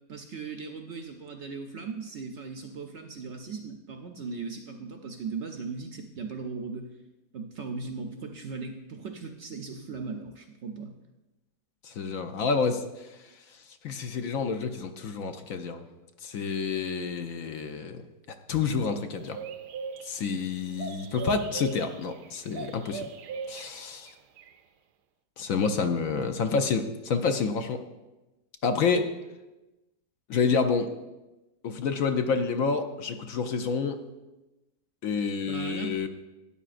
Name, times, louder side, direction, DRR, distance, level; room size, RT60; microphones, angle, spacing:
voice 1, 0.1-6.9 7.3-10.9 35.5-36.0, right 4 dB, 65° right, 5 dB, 0.7 m, -38 dB
voice 2, 11.8-13.1 13.8-15.8 16.2-18.0 18.5-19.4 20.0-23.1 23.5-24.1 25.4-27.8 28.6-29.1 30.3-30.9 31.6-34.0 35.0-36.1, left 5 dB, 65° left, 7 dB, 0.9 m, -28 dB
sound 1, 19.1-24.1 24.4-24.6, right 5 dB, 90° right, 1.2 m, -39 dB
12.5 x 9.7 x 2.5 m, 1.0 s
omnidirectional pair, 1.7 m